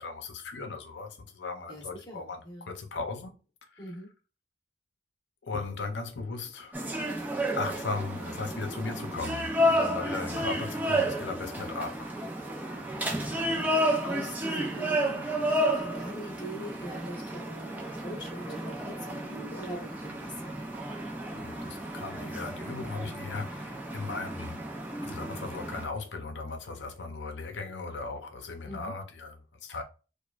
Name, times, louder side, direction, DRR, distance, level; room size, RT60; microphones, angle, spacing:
voice 1, 0.0-3.3 3.7-3.8 5.4-6.8 7.5-12.2 21.3-24.6 25.0-29.8, left 3 dB, 85° left, 0.7 m, -37 dB
voice 2, 1.7-2.7 3.8-4.1 13.2-13.7 14.0-20.8 28.6-28.9, right 1 dB, 25° left, 1.1 m, -42 dB
sound 1, 6.7-25.8, equal, 10° right, 0.5 m, -32 dB
4.7 x 2.3 x 2.4 m
head